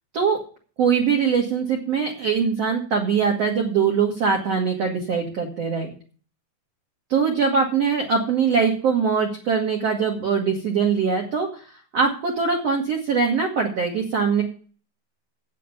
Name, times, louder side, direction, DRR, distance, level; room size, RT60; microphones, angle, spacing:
voice 1, 0.8-5.9 7.1-11.6 11.9-14.4, right 6 dB, 55° right, 1 dB, 1.8 m, -22 dB
8.5 x 7.7 x 9.0 m, 0.42 s
omnidirectional pair, 5.3 m